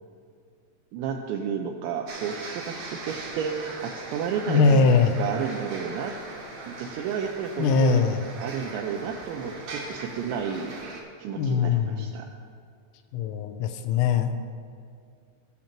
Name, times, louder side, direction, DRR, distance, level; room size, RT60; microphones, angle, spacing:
voice 1, 0.9-4.9 5.2-6.1 6.7-8.0 8.4-10.9 11.2-12.3, right 7 dB, 90° right, 2 dB, 2.6 m, -31 dB
sound 1, 2.1-11.0, right 2 dB, 70° right, 1.6 m, -39 dB
voice 2, 4.5-5.1 7.6-8.2 11.3-12.1 13.1-14.3, left 5 dB, 85° left, 9 dB, 3.2 m, -21 dB
17.5 x 7.2 x 3.0 m, 2.2 s
omnidirectional pair, 5.8 m